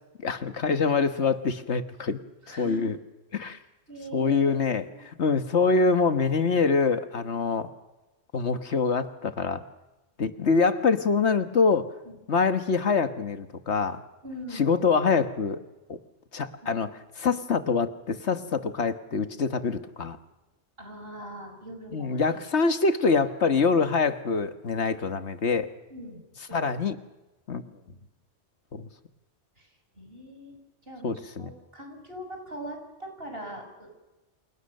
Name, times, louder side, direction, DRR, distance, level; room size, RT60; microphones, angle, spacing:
voice 1, 0.2-2.2 2.6-3.0 3.3-3.6 4.1-7.7 8.3-9.6 10.2-11.9 12.3-14.0 14.5-15.6 15.9-16.0 16.3-20.2 21.9-25.7 26.5-26.9 27.5-27.6 28.7-28.9 31.0-31.5, left 4 dB, 75° left, 9 dB, 1.7 m, -25 dB
voice 2, 2.4-2.9 3.4-3.5 3.9-5.1 12.1-12.2 14.2-14.8 16.6-16.7 20.8-22.4 24.8-24.9 25.9-26.6 29.6-29.7 30.0-33.9, right 1 dB, 55° right, 4 dB, 6.9 m, -42 dB
29.5 x 27.5 x 6.6 m, 1.0 s
omnidirectional pair, 1.2 m